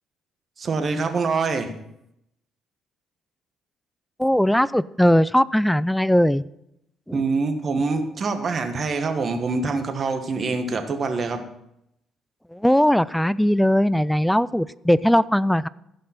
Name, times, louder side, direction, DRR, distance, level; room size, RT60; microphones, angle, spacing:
voice 1, 0.6-1.7 7.1-11.4, right 4 dB, 40° right, 6 dB, 1.5 m, -25 dB
voice 2, 4.2-6.4 7.1-7.2 12.5-15.7, equal, 5° left, 18 dB, 0.3 m, -19 dB
15.0 x 5.4 x 5.9 m, 0.80 s
cardioid pair, 105°, 0 cm